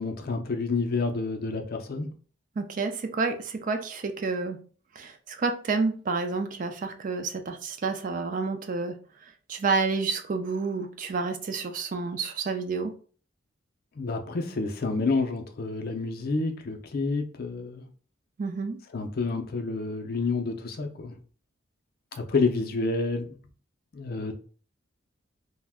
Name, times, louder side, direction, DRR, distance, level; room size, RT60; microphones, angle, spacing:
voice 1, 0.0-2.1 14.0-17.8 18.9-21.2 22.1-23.3 23.9-24.3, left 3 dB, 50° left, 0.4 m, -29 dB
voice 2, 2.6-4.6 5.0-8.9 9.5-12.9 18.4-18.8, right 4 dB, 40° right, 0.4 m, -29 dB
2.5 x 2.1 x 3.5 m
head